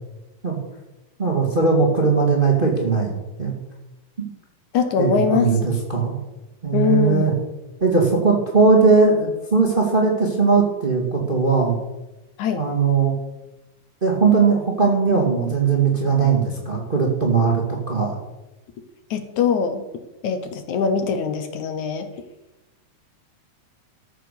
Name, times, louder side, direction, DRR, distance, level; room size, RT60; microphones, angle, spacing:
voice 1, 1.2-3.1 3.4-3.5 5.0-6.1 6.6-7.3 7.8-11.8 12.5-13.1 14.0-18.2, right 4 dB, 20° right, -1 dB, 1.6 m, -19 dB
voice 2, 4.7-5.5 6.7-7.3 12.4-12.6 19.1-19.8 20.2-22.1, left 6 dB, 70° left, 8 dB, 2.3 m, -22 dB
14.0 x 7.5 x 6.7 m, 1.0 s
omnidirectional pair, 3.7 m